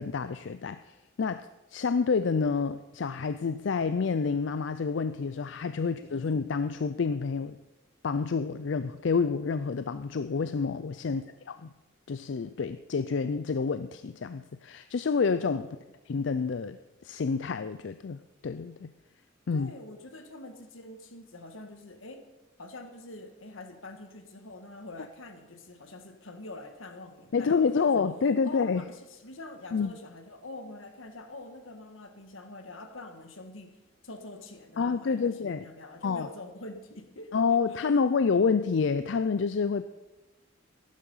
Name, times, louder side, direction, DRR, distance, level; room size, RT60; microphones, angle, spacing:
voice 1, 0.0-7.6 8.0-11.7 12.1-15.7 16.1-18.9 19.5-19.7 27.3-28.8 29.7-29.9 34.8-35.6 36.0-36.3 37.3-39.8, left 5 dB, 65° left, 11 dB, 0.4 m, -28 dB
voice 2, 19.5-22.2 22.6-28.1 28.4-33.8 34.0-37.4 37.7-37.8, left 2 dB, 90° left, 6 dB, 1.7 m, -45 dB
14.0 x 11.5 x 5.6 m, 1.1 s
head